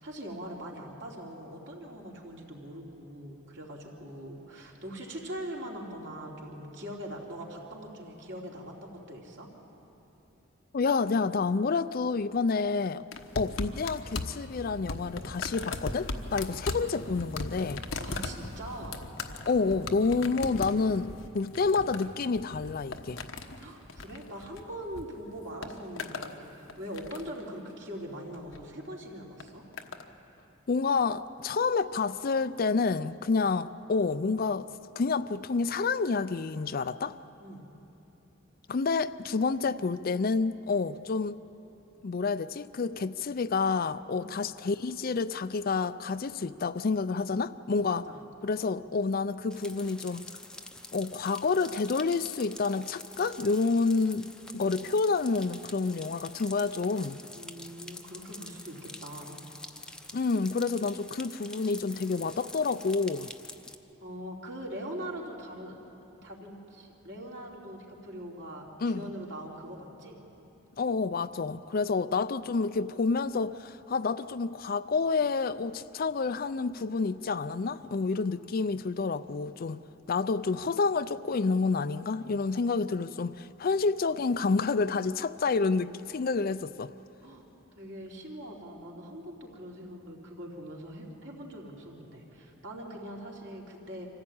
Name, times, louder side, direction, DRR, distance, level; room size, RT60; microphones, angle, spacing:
voice 1, 0.0-9.5 18.0-19.0 23.5-29.6 37.4-37.7 44.1-44.4 47.9-48.2 57.3-59.4 64.0-65.8 66.2-70.2 87.2-87.5 87.8-94.1, equal, 65° right, 3.5 m, -42 dB
voice 2, 10.7-13.0 13.4-17.8 19.5-23.2 30.7-34.7 35.0-37.2 38.7-41.4 42.0-48.1 48.4-50.2 50.9-54.3 54.5-57.2 60.1-63.3 68.8-69.1 70.8-79.8 80.1-86.9, left 4 dB, 50° left, 0.5 m, -29 dB
sound 1, 13.1-25.0 25.3-26.3 26.7-27.4 28.3-28.6 29.4-30.1 30.9-31.0, left 3 dB, 85° left, 1.2 m, -38 dB
sound 2, 49.5-63.8, left 2 dB, 5° left, 0.7 m, -46 dB
25.0 x 15.5 x 8.8 m
head